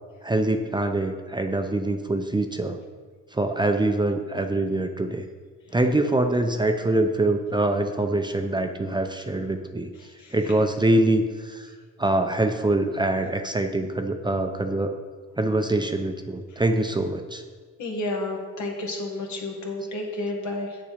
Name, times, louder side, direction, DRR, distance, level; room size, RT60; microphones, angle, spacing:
voice 1, 0.2-2.8 3.3-5.3 5.7-9.9 10.3-11.7 12.0-15.0 15.4-17.4, right 2 dB, 15° right, 6 dB, 0.6 m, -24 dB
voice 2, 17.8-20.8, left 2 dB, 70° left, 1 dB, 1.9 m, -31 dB
8.1 x 7.0 x 5.0 m, 1.6 s
cardioid pair, 90°, 30 cm